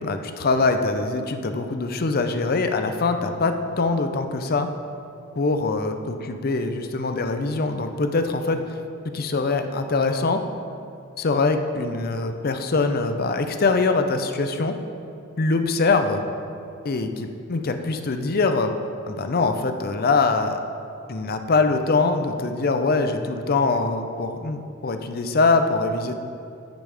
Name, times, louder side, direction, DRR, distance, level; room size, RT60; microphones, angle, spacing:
voice 1, 0.0-4.7 5.4-5.9 6.3-8.6 9.1-10.4 11.2-14.8 15.4-16.2 16.8-18.7 19.1-20.6 21.1-26.1, left 3 dB, 45° left, 7 dB, 0.5 m, -23 dB
15.0 x 5.3 x 3.4 m, 2.5 s
head